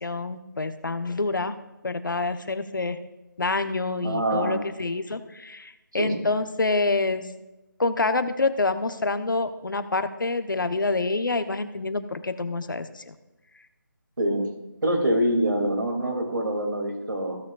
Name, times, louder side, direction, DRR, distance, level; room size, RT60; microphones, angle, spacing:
voice 1, 0.0-1.6 1.8-3.0 3.4-7.2 7.8-13.1, left 3 dB, 75° left, 10 dB, 0.9 m, -27 dB
voice 2, 4.0-4.6 6.0-6.2 14.2-14.5 14.8-17.4, right 1 dB, 75° right, 0 dB, 2.5 m, -25 dB
16.0 x 7.0 x 2.4 m, 0.99 s
figure-of-eight pair, 180°, 11 cm